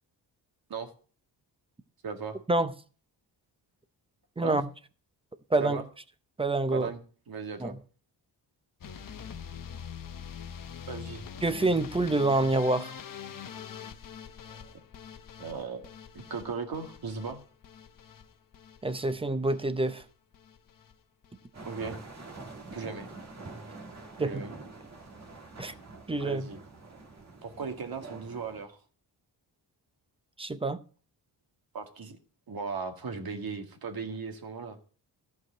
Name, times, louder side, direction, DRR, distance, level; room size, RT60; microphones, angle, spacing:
voice 1, 2.0-2.4 4.4-4.6 5.6-5.8 6.7-7.7 10.9-11.2 14.5-14.7 15.4-17.4 21.6-22.0 22.7-23.1 24.2-24.5 26.2-26.6 27.4-28.8 31.7-32.2 32.5-34.8, right 5 dB, 55° right, 2.0 m, -37 dB
voice 2, 4.4-4.7 5.5-5.8 6.4-6.9 7.6-7.7 11.4-12.9 18.8-20.0 24.2-24.4 25.6-25.7 26.1-26.5 30.4-30.8, right 2 dB, 15° right, 0.6 m, -27 dB
sound 1, 8.8-20.9 21.2-21.8 22.1-22.7 23.0-23.3 23.6-23.7 23.9-24.0, left 7 dB, 50° left, 1.0 m, -45 dB
sound 2, 21.5-28.6, right 3 dB, 40° right, 1.9 m, -46 dB
14.5 x 4.8 x 7.6 m
wide cardioid pair, 135°, 42 cm